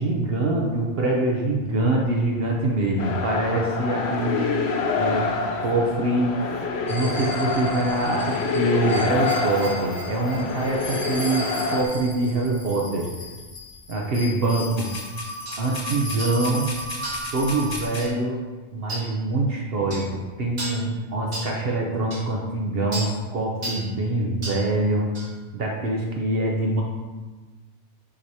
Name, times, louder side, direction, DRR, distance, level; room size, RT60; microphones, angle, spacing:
voice 1, 0.0-4.5 5.0-5.3 5.6-6.3 6.9-13.1 13.9-14.9 15.6-16.7 17.3-18.4 18.7-25.1 25.5-26.8, right 2 dB, 60° right, -1 dB, 0.9 m, -24 dB
sound 1, 3.0-11.8, left 4 dB, 70° left, 0.9 m, -27 dB
sound 2, 6.9-18.1, left 1 dB, 35° left, 0.9 m, -35 dB
sound 3, 15.5-15.6 16.2-16.4 17.0-17.3 18.0-18.2 18.9-19.1 19.9-20.1 20.6-20.8 21.3-21.5 22.1-22.2 22.9-23.1 23.6-23.9 24.4-24.6 25.1-25.3, right 1 dB, 40° right, 1.5 m, -33 dB
7.4 x 2.9 x 4.8 m, 1.3 s
omnidirectional pair, 1.2 m